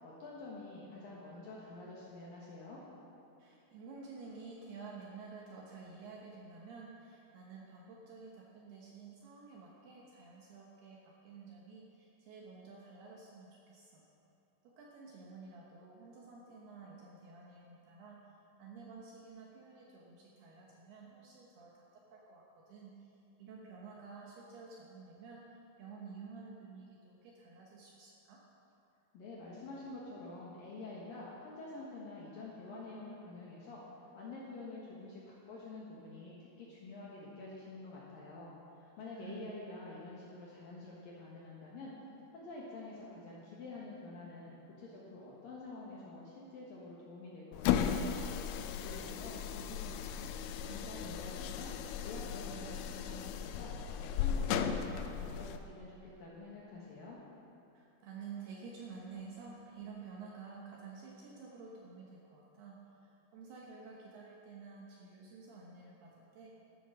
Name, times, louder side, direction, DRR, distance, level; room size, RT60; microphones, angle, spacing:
voice 1, 0.0-2.8 29.1-33.8 34.1-38.5 38.8-41.9 42.3-48.2 48.8-50.3 50.6-51.7 52.0-53.7 54.0-57.2, left 2 dB, 65° left, -5 dB, 2.3 m, -48 dB
voice 2, 3.4-14.0 14.6-18.3 18.6-23.1 23.4-28.4 39.1-39.6 57.7-66.5, right 4 dB, 70° right, -2 dB, 2.6 m, -51 dB
sound 1, 47.5-55.6, left 8 dB, 85° left, 3.0 m, -36 dB
13.0 x 9.1 x 6.2 m, 2.8 s
omnidirectional pair, 5.8 m